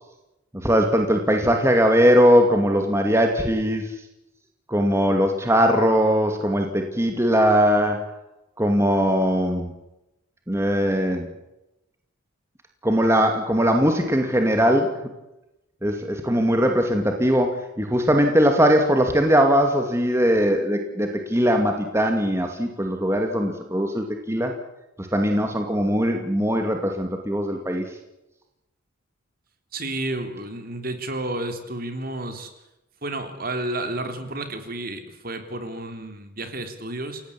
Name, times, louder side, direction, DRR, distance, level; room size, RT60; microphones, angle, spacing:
voice 1, 0.5-4.0 4.7-8.1 8.6-9.7 10.5-11.3 12.8-15.1 15.8-24.5 25.0-28.0, equal, 15° right, 3 dB, 2.3 m, -20 dB
voice 2, 29.7-32.5 33.0-37.2, right 2 dB, 45° right, 7 dB, 3.6 m, -31 dB
28.5 x 17.5 x 8.6 m, 0.92 s
head